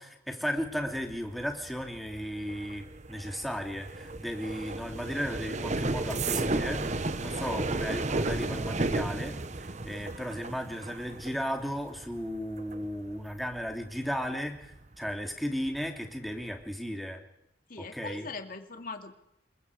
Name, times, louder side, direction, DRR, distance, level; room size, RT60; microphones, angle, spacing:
voice 1, 0.0-17.2 17.8-18.3, equal, ahead, 3 dB, 2.9 m, -35 dB
sound 1, 0.6-15.2 15.5-16.0 16.3-16.6, right 2 dB, 40° right, 1.0 m, -34 dB
voice 2, 17.7-19.1, left 4 dB, 50° left, 5 dB, 2.7 m, -40 dB
27.5 x 23.0 x 4.9 m, 0.82 s
head